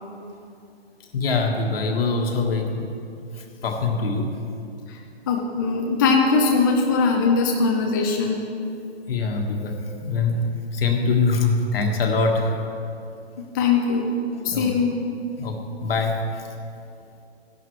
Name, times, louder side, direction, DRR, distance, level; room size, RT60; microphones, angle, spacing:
voice 1, 1.1-2.9 3.4-4.3 9.1-12.8 14.5-14.7 15.4-16.4, left 3 dB, 60° left, 3 dB, 1.6 m, -24 dB
voice 2, 5.3-8.4 13.5-14.1 14.4-15.0, left 4 dB, 20° left, 0 dB, 0.5 m, -21 dB
15.0 x 11.0 x 3.2 m, 2.6 s
hypercardioid pair, 155°, 33 cm